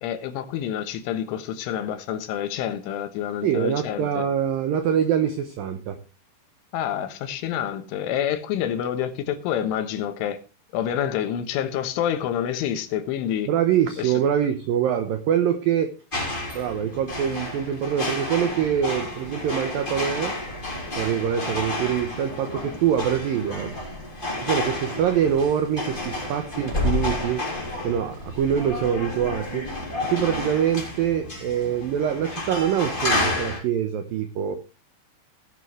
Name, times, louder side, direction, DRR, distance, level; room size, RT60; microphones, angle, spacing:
voice 1, 0.0-4.2 6.7-10.4 10.7-13.5 14.0-14.1, left 10 dB, 85° left, 3.7 m, -28 dB
voice 2, 3.4-6.0 13.5-15.9 16.5-20.3 21.0-23.7 24.4-27.5 27.8-29.7 30.0-34.6, right 9 dB, 90° right, 2.0 m, -24 dB
sound 1, 16.1-33.6, left 2 dB, 10° left, 3.0 m, -30 dB
17.0 x 9.6 x 3.3 m
omnidirectional pair, 5.5 m